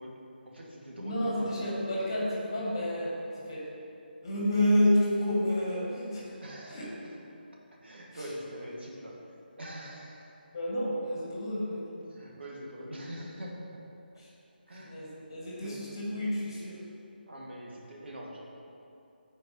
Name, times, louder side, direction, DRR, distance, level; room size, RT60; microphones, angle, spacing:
voice 1, 0.0-1.7 6.4-7.2 7.8-10.4 12.0-13.9 14.7-15.3 15.6-15.9 17.3-18.5, equal, 90° right, -3 dB, 1.6 m, -44 dB
voice 2, 1.0-3.7 4.2-6.4 6.7-6.9 10.5-11.9 14.2-14.3 14.8-16.8, left 1 dB, 25° left, -6 dB, 1.4 m, -30 dB
8.8 x 4.5 x 4.1 m, 2.7 s
hypercardioid pair, 180°, 6 cm